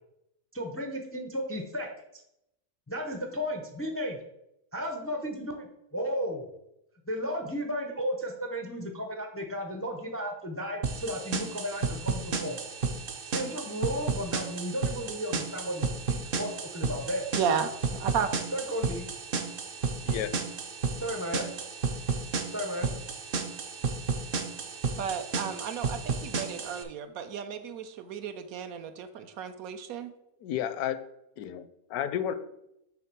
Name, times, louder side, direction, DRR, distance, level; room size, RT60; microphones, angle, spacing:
voice 1, 0.5-1.9 2.9-4.2 4.7-6.5 7.1-12.7 13.3-17.3 18.5-19.1 20.9-21.5 22.4-22.9, equal, 20° left, 3 dB, 0.3 m, -34 dB
sound 1, 10.8-26.8, right 4 dB, 55° right, 0.6 m, -33 dB
voice 2, 17.3-18.3 25.0-30.1, right 7 dB, 75° right, 9 dB, 1.0 m, -33 dB
voice 3, 30.4-31.0 31.4-32.3, left 10 dB, 80° left, 11 dB, 1.0 m, -32 dB
6.4 x 3.4 x 6.0 m, 0.83 s
omnidirectional pair, 1.6 m